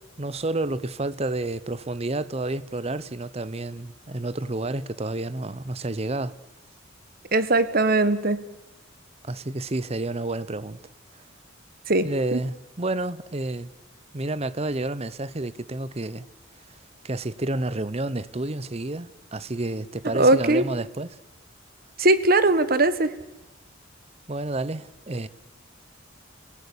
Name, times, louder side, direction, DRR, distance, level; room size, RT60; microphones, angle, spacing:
voice 1, 0.2-6.3 9.2-10.8 12.0-13.7 14.1-16.2 17.0-21.2 24.3-25.3, right 2 dB, 30° right, 0.8 m, -30 dB
voice 2, 7.3-8.4 11.9-12.4 20.1-20.6 22.0-23.1, right 2 dB, 45° right, 1.4 m, -20 dB
29.5 x 17.5 x 8.5 m
head